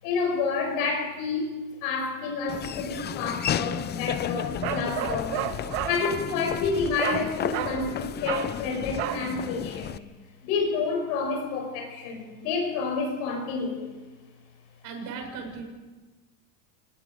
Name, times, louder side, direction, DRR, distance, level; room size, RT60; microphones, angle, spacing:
voice 1, 0.0-5.4 5.8-10.0 10.4-14.0, left 4 dB, 70° left, 2 dB, 5.3 m, -29 dB
Laughter / Walk footsteps, 2.5-10.0, left 10 dB, 25° left, 0.6 m, -33 dB
Bark, 4.6-6.0 7.0-7.3 7.5-7.8 8.2-8.5 9.0-9.3, right 12 dB, 75° right, 2.0 m, -31 dB
voice 2, 14.8-15.6, right 5 dB, 55° right, 3 dB, 6.7 m, -37 dB
28.0 x 20.0 x 5.2 m, 1.2 s
cardioid pair, 140°, 39 cm